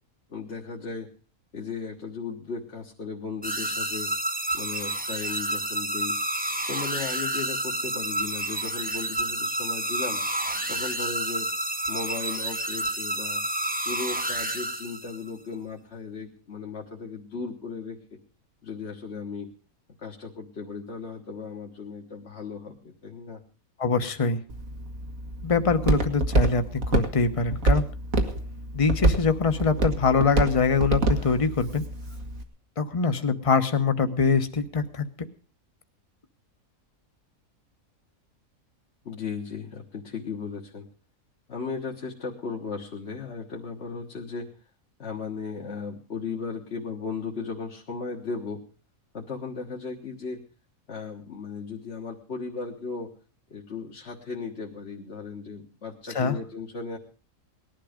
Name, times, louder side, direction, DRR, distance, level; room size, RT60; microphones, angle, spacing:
voice 1, 0.3-1.1 1.5-4.1 4.5-6.2 6.7-10.2 10.7-11.5 11.9-13.4 13.8-18.0 18.6-19.5 20.0-23.4 39.0-40.9 41.5-44.5 45.0-48.6 49.1-50.4 50.9-53.1 53.5-57.0, left 5 dB, 50° left, -1 dB, 1.7 m, -36 dB
sound 1, 3.4-15.3, right 1 dB, 5° right, 0.9 m, -29 dB
voice 2, 23.8-24.4 25.4-27.9 28.7-31.8 32.8-35.1 56.1-56.3, left 4 dB, 25° left, 9 dB, 1.1 m, -23 dB
Walk footsteps, 24.5-32.4, right 2 dB, 75° right, 2.2 m, -27 dB
19.0 x 11.5 x 5.1 m, 0.38 s
omnidirectional pair, 1.4 m